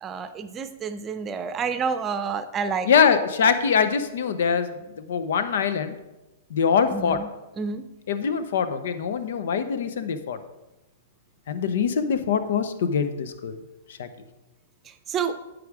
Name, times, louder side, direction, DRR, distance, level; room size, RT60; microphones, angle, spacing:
voice 1, 0.0-2.9 6.9-7.3 7.6-7.8 15.1-15.3, right 6 dB, 25° right, 10 dB, 0.6 m, -29 dB
voice 2, 2.8-5.9 6.5-7.2 8.1-10.4 11.5-13.6 14.0-14.1, left 6 dB, 70° left, 11 dB, 0.7 m, -23 dB
9.4 x 5.0 x 4.8 m, 1.0 s
hypercardioid pair, 120°, 0 cm